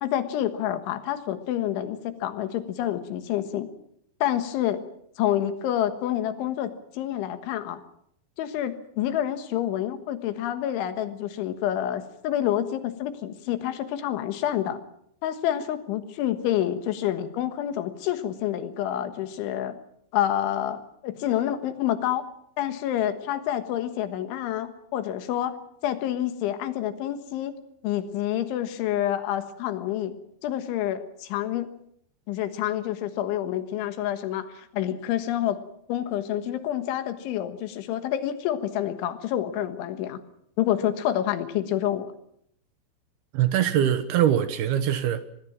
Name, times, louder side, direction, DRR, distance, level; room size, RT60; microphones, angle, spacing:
voice 1, 0.0-3.7 4.2-4.8 5.2-7.8 8.4-14.8 15.2-19.8 20.1-22.3 22.6-25.6 25.8-27.5 27.8-30.1 30.4-31.7 32.3-35.6 35.9-40.2 40.6-42.1, left 11 dB, 85° left, 3.9 m, -28 dB
voice 2, 43.3-45.2, right 10 dB, 70° right, 2.7 m, -22 dB
24.0 x 20.5 x 7.4 m
omnidirectional pair, 5.3 m